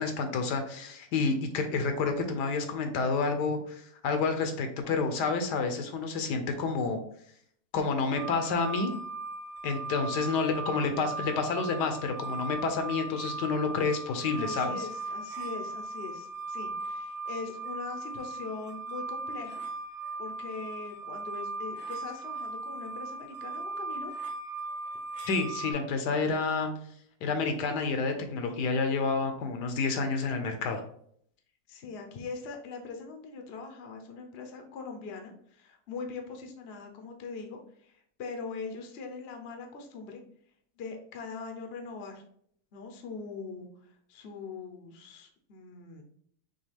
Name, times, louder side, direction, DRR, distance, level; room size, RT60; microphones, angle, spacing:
voice 1, 0.0-7.0 7.7-8.9 9.6-14.9 25.3-26.7 27.2-30.8, left 4 dB, 75° left, 6 dB, 1.2 m, -29 dB
sound 1, 8.1-25.7, right 3 dB, 50° right, 0.5 m, -38 dB
voice 2, 14.3-19.6 20.2-24.1 31.7-40.2 40.8-42.2 42.7-46.0, left 4 dB, 55° left, 4 dB, 0.7 m, -42 dB
6.0 x 2.3 x 3.4 m, 0.64 s
omnidirectional pair, 1.9 m